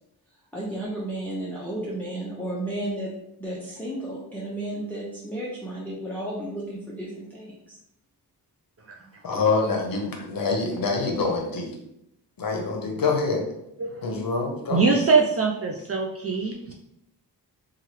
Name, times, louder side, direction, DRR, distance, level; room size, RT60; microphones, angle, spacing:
voice 1, 0.5-3.1 3.4-7.8, right 1 dB, 5° left, -6 dB, 0.6 m, -33 dB
voice 2, 9.2-11.7 12.4-13.4 14.0-14.8, left 4 dB, 55° left, 1 dB, 0.8 m, -25 dB
voice 3, 14.7-16.7, right 4 dB, 35° right, -1 dB, 0.4 m, -23 dB
2.9 x 2.4 x 3.1 m, 0.80 s
cardioid pair, 80°, 41 cm